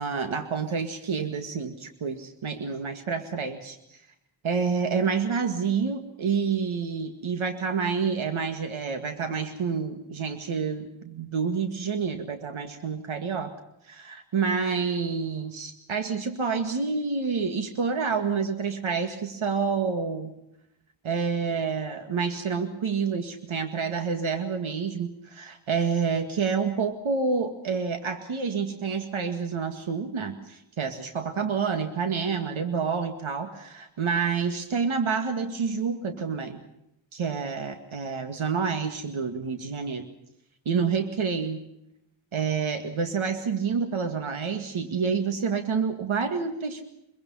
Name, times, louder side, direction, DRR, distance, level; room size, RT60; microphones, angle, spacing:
voice 1, 0.0-3.8 4.4-13.5 13.9-20.3 21.0-36.6 37.1-40.1 40.7-41.6 42.3-46.8, right 5 dB, 90° right, 6 dB, 2.1 m, -28 dB
24.5 x 23.0 x 5.6 m, 0.81 s
wide cardioid pair, 110°, 47 cm